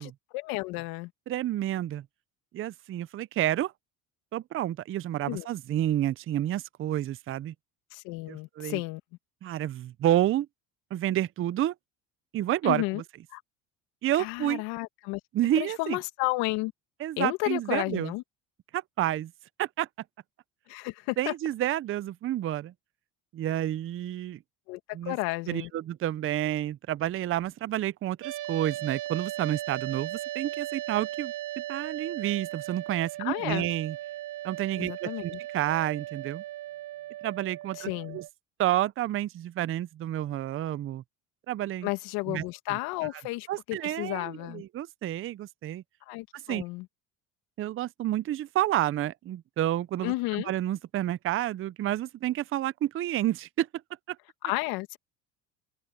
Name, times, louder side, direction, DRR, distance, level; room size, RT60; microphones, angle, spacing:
voice 1, 0.0-1.1 5.3-5.5 7.9-9.0 12.6-13.0 13.3-13.4 14.2-15.2 15.6-16.7 17.2-18.2 20.7-21.3 24.7-25.7 33.2-33.7 34.8-35.4 37.7-38.2 41.8-44.6 46.1-46.9 50.0-50.5 54.4-55.0, left 22 dB, 80° left, 2.1 m, -32 dB
voice 2, 1.3-2.0 2.5-3.7 4.3-7.5 8.3-8.8 9.4-10.5 10.9-11.7 12.3-13.0 14.0-14.6 15.3-16.0 17.0-18.1 18.7-19.3 19.6-19.9 21.2-22.7 23.3-24.4 24.9-25.2 25.5-34.0 34.4-36.4 37.2-38.2 38.6-41.0 41.5-41.9 42.3-42.8 43.5-45.8 46.3-46.6 47.6-50.1 50.5-53.7 54.1-54.2, right 13 dB, 35° right, 0.5 m, -30 dB
sound 1, 28.2-38.3, right 14 dB, 60° right, 4.2 m, -37 dB
supercardioid pair, 90°, 37 cm